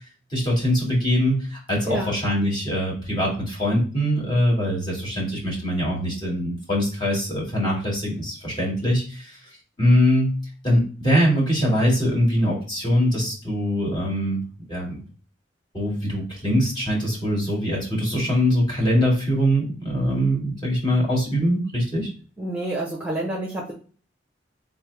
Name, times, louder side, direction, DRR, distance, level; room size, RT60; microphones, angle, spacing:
voice 1, 0.3-9.4 9.8-10.4 10.6-14.4 14.7-15.0 15.7-22.1, equal, 25° left, -5 dB, 2.2 m, -22 dB
voice 2, 22.4-23.7, right 1 dB, 10° right, -2 dB, 0.9 m, -28 dB
3.8 x 3.4 x 3.3 m, 0.39 s
head